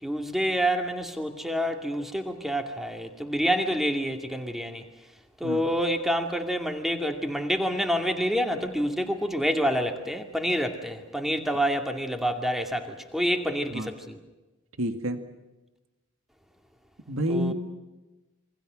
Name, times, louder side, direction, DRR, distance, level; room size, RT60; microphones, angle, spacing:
voice 1, 0.0-4.8 5.4-14.2 17.3-17.5, equal, ahead, 4 dB, 2.5 m, -27 dB
voice 2, 14.8-15.2 17.1-17.5, equal, 80° right, 7 dB, 2.1 m, -28 dB
28.0 x 24.5 x 6.4 m, 1.1 s
head